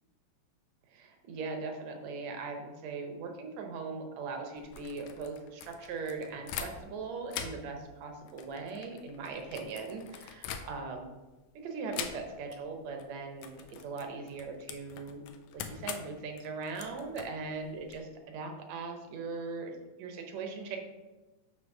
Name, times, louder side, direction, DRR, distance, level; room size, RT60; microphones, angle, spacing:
voice 1, 0.9-11.1 11.6-15.2 15.5-19.7 20.0-20.8, right 4 dB, 70° right, 4 dB, 1.9 m, -40 dB
sound 1, 4.6-7.0 7.3-11.1 11.9-12.6 12.9-13.1 13.4-18.0, left 8 dB, 90° left, 2.0 m, -43 dB
7.8 x 3.0 x 5.9 m, 1.1 s
omnidirectional pair, 3.4 m